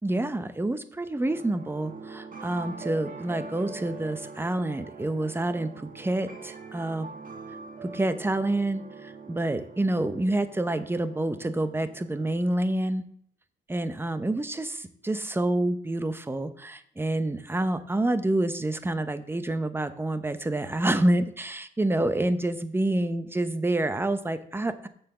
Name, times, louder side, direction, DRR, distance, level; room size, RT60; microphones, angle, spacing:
voice 1, 0.0-7.1 7.8-13.0 13.7-24.9, right 1 dB, 10° right, 11 dB, 0.8 m, -28 dB
sound 1, 1.2-12.3, right 4 dB, 45° right, 1.3 m, -43 dB
7.1 x 6.8 x 6.7 m, 0.63 s
cardioid pair, 90°, 20 cm